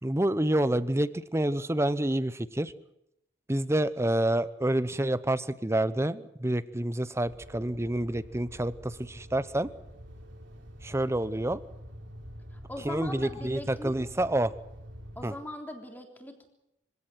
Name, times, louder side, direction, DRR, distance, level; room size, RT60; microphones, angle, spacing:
voice 1, 0.0-2.7 3.5-9.7 10.8-11.6 12.8-14.5 15.2-15.3, right 1 dB, 15° right, 16 dB, 0.8 m, -28 dB
sound 1, 7.2-15.3, equal, 70° right, 4.6 m, -47 dB
voice 2, 12.7-13.9 15.2-16.5, left 1 dB, 10° left, 3 dB, 3.6 m, -40 dB
25.0 x 17.0 x 9.1 m, 0.83 s
head